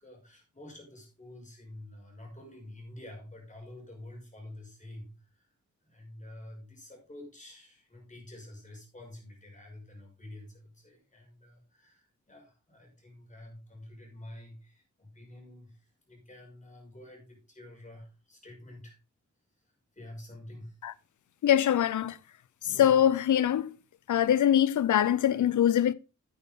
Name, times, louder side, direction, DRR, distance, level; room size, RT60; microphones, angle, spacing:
voice 1, 0.0-5.5 5.8-19.0 19.9-20.8, left 1 dB, 25° left, 5.7 m, -48 dB
voice 2, 21.4-22.2 22.6-23.7 24.1-25.9, left 10 dB, 70° left, 0.6 m, -23 dB
9.7 x 9.5 x 3.7 m
wide cardioid pair, 120°, 31 cm